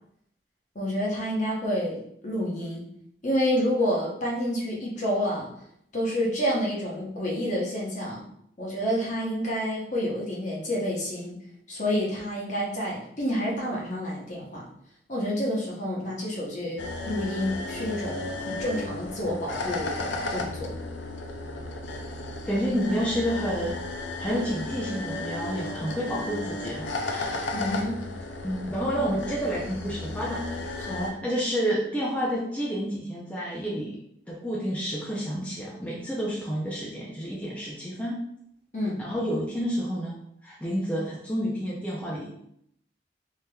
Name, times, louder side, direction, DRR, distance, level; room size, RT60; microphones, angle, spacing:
voice 1, 0.7-2.8 3.2-5.5 5.9-8.2 8.6-11.3 11.7-14.6 15.1-20.8 27.5-28.0 30.8-31.1 38.7-39.0, equal, 45° left, -4 dB, 0.8 m, -29 dB
sound 1, 16.8-31.1, left 2 dB, 80° left, 0.4 m, -34 dB
voice 2, 22.5-23.8 24.2-27.5 28.4-30.5 31.2-34.0 34.3-38.2 39.0-42.4, equal, 10° left, -5 dB, 0.4 m, -29 dB
3.3 x 2.8 x 2.2 m, 0.73 s
head